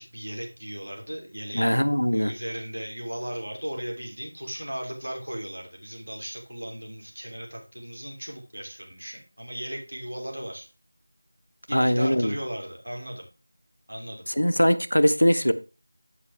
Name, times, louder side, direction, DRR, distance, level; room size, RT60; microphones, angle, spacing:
voice 1, 0.0-1.8 2.1-10.7 11.7-13.3 13.9-14.3, equal, 75° right, 3.0 m, -36 dB
voice 2, 1.5-2.3 11.7-12.3 14.4-15.5, equal, 85° left, 1.0 m, -21 dB
9.8 x 8.4 x 3.4 m
figure-of-eight pair, 170°, 0 cm